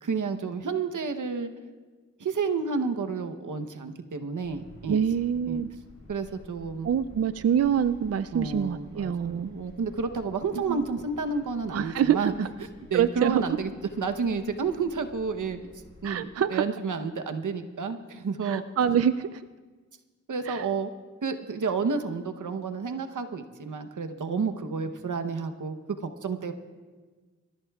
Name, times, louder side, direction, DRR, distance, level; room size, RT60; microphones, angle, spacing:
voice 1, 0.0-1.5 2.2-5.0 5.5-5.6 6.1-6.9 8.3-12.5 12.9-13.7 14.0-15.6 16.0-18.6 20.3-20.9 21.2-25.8 26.0-26.5, right 5 dB, 85° right, 7 dB, 0.9 m, -30 dB
sound 1, 4.4-16.2, left 2 dB, 65° left, 3.5 m, -52 dB
voice 2, 4.9-5.7 6.8-9.5 10.7-10.9 11.7-12.3 12.9-13.5 16.0-16.6 18.4-19.5 20.5-20.7, right 8 dB, 55° right, 12 dB, 0.4 m, -25 dB
26.5 x 14.5 x 2.3 m, 1.4 s
cardioid pair, 50°, 30 cm